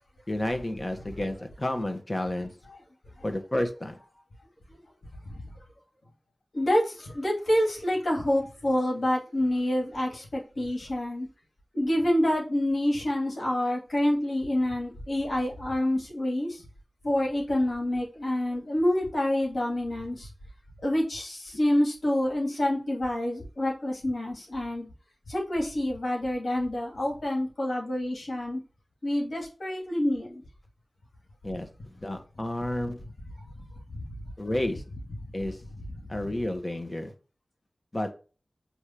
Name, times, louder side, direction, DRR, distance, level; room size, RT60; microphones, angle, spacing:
voice 1, 0.3-2.5 3.2-4.0 31.4-33.0 34.4-34.8 35.3-35.6 36.1-37.1 37.9-38.1, left 1 dB, 35° left, 6 dB, 1.8 m, -31 dB
voice 2, 6.5-11.3 11.7-16.6 17.0-20.3 20.8-24.9 25.3-28.6 29.0-30.4, left 1 dB, 75° left, -1 dB, 2.6 m, -27 dB
7.8 x 3.4 x 5.9 m, 0.36 s
cardioid pair, 45°, 0 cm